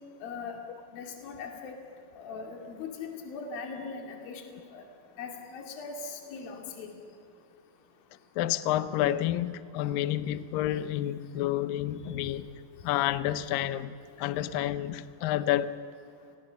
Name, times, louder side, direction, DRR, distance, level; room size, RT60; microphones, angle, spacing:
voice 1, 0.2-0.6 0.9-1.8 2.2-4.8 5.2-6.9, left 5 dB, 55° left, 4.2 m, -40 dB
voice 2, 8.4-12.5 12.8-15.8, left 13 dB, 85° left, 2.0 m, -29 dB
29.0 x 20.0 x 7.0 m
omnidirectional pair, 5.2 m